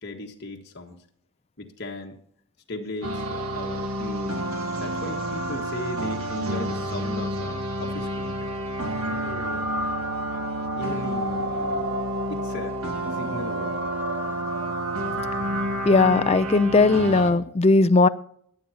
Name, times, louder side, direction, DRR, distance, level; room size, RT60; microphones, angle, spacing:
voice 1, 0.0-1.0 1.6-2.2 2.7-4.4 4.7-9.7 10.3-11.9 12.3-12.8 13.1-13.9, left 1 dB, 50° left, 1 dB, 1.5 m, -38 dB
sound 1, 3.0-17.3, right 1 dB, 80° right, 1.6 m, -29 dB
voice 2, 15.9-18.1, left 3 dB, 30° left, 13 dB, 0.4 m, -18 dB
22.0 x 8.5 x 2.9 m, 0.66 s
head